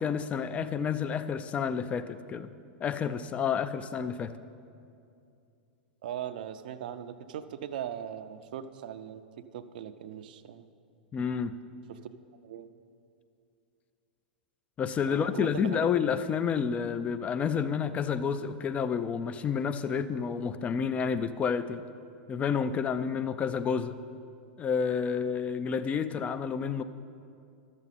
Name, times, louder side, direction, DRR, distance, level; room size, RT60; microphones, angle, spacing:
voice 1, 0.0-2.5 2.8-4.3 11.1-11.5 14.8-21.8 22.3-24.0 24.6-26.8, left 6 dB, 25° left, 12 dB, 0.4 m, -30 dB
voice 2, 6.0-9.2 9.5-10.7 11.9-12.0 12.4-12.7 15.1-15.8, right 10 dB, 65° right, 11 dB, 0.5 m, -39 dB
12.0 x 7.3 x 4.1 m, 2.5 s
hypercardioid pair, 100°, 5 cm